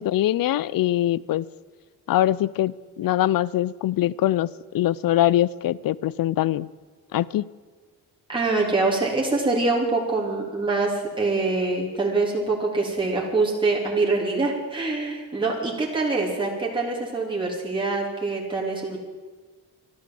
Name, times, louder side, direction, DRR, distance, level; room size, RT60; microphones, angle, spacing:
voice 1, 0.0-1.5 2.1-6.7 7.1-7.5, left 13 dB, 65° left, 21 dB, 0.5 m, -23 dB
voice 2, 8.3-19.0, right 3 dB, 15° right, -4 dB, 3.3 m, -24 dB
12.5 x 11.5 x 7.6 m, 1.4 s
cardioid pair, 75°, 38 cm